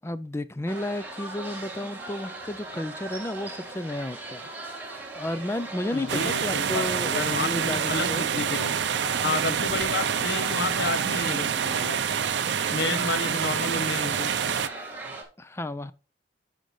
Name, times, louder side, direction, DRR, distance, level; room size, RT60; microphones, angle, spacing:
voice 1, 0.0-4.5 4.8-8.3 15.4-15.9, left 1 dB, 15° left, 0.4 m, -33 dB
sound 1, 0.7-15.2, right 2 dB, 10° right, 1.9 m, -39 dB
voice 2, 5.9-8.7 9.2-12.0 12.7-14.3, left 3 dB, 70° left, 1.0 m, -31 dB
sound 2, 6.1-14.7, right 8 dB, 70° right, 0.5 m, -27 dB
9.1 x 6.5 x 3.2 m
head